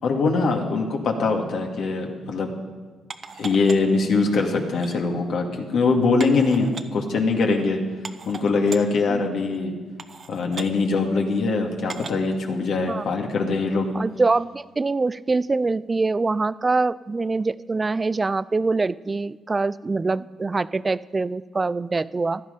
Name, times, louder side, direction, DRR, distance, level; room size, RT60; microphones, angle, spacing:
voice 1, 0.0-2.5 3.4-7.8 8.3-9.7 10.3-13.9, left 4 dB, 70° left, 2 dB, 2.1 m, -22 dB
sound 1, 3.1-4.0 4.7-5.0 6.2-6.8 7.6-7.7 8.0-8.8 9.5-9.6 10.0-10.7 11.9-12.3 12.9-13.0, right 5 dB, 45° right, 0.9 m, -37 dB
voice 2, 13.9-22.4, right 3 dB, 25° right, 18 dB, 0.4 m, -24 dB
15.5 x 12.0 x 5.2 m, 1.4 s
cardioid pair, 90°, 0 cm